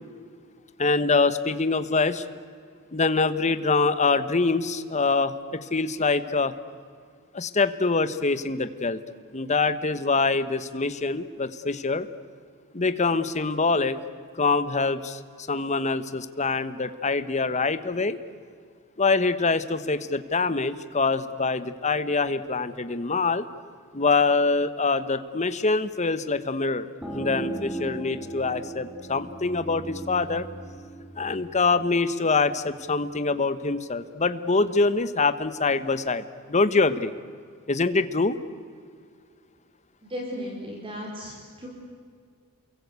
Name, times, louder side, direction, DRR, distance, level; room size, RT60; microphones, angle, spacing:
voice 1, 0.8-2.2 2.9-6.5 7.3-9.0 9.3-12.1 12.7-14.0 14.4-15.2 15.5-18.2 19.0-23.4 23.9-30.5 31.1-37.1 37.7-38.4, left 3 dB, 30° left, 12 dB, 1.1 m, -24 dB
sound 1, 27.0-32.4, right 2 dB, ahead, 3.4 m, -38 dB
voice 2, 40.0-41.7, equal, 25° right, -1 dB, 4.0 m, -35 dB
28.5 x 23.0 x 8.2 m, 2.1 s
head